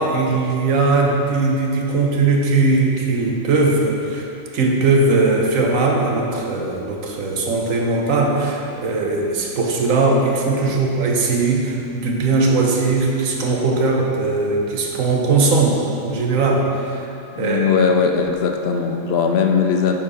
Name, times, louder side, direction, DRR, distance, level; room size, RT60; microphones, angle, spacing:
voice 1, 0.0-4.2 4.5-17.0 17.4-17.8, right 3 dB, 85° right, 0 dB, 1.3 m, -19 dB
voice 2, 17.4-20.0, left 6 dB, 60° left, 4 dB, 0.8 m, -19 dB
8.7 x 4.6 x 5.0 m, 2.8 s
omnidirectional pair, 1.4 m